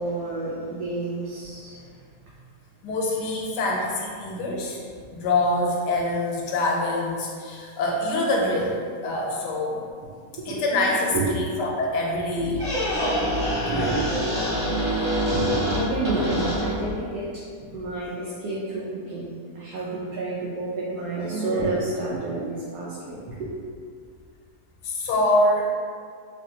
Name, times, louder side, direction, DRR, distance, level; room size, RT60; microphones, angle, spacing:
voice 1, 0.0-1.9 10.3-11.3 12.5-12.6 13.7-14.2 14.6-17.4 17.7-19.3 19.5-23.5, right 2 dB, 75° right, -7 dB, 1.1 m, -30 dB
voice 2, 2.8-4.8 5.1-9.8 10.5-12.6 13.0-13.2 13.7-13.9 17.7-17.8 24.8-25.8, left 1 dB, 90° left, -2 dB, 1.2 m, -25 dB
Squeak, 12.4-17.0, equal, 50° right, 1.3 m, -26 dB
3.1 x 2.5 x 2.7 m, 2.1 s
omnidirectional pair, 1.8 m